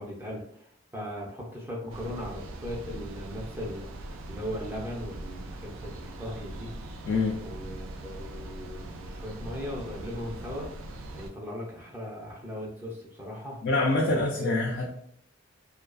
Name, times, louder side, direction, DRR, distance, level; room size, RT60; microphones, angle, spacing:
voice 1, 0.0-6.7 7.4-10.7 11.1-13.6 14.0-14.5, equal, 10° right, -3 dB, 0.5 m, -38 dB
sound 1, 1.9-11.3, right 1 dB, 70° right, 0.3 m, -41 dB
voice 2, 7.0-7.4 13.6-14.9, left 2 dB, 55° left, -2 dB, 0.4 m, -25 dB
2.4 x 2.3 x 2.3 m, 0.68 s
head